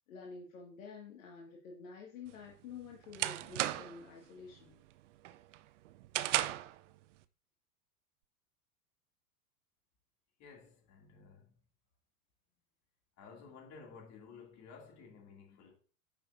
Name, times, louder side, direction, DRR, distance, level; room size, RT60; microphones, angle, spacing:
voice 1, 0.1-4.8, left 5 dB, 55° left, 2.0 m, -49 dB
sound 1, 2.3-4.1 4.5-4.9 5.3-6.8, right 14 dB, 50° right, 0.6 m, -35 dB
voice 2, 10.4-11.5 13.2-15.7, left 5 dB, 35° left, 2.9 m, -54 dB
9.7 x 7.2 x 2.7 m
figure-of-eight pair, 90°, 47 cm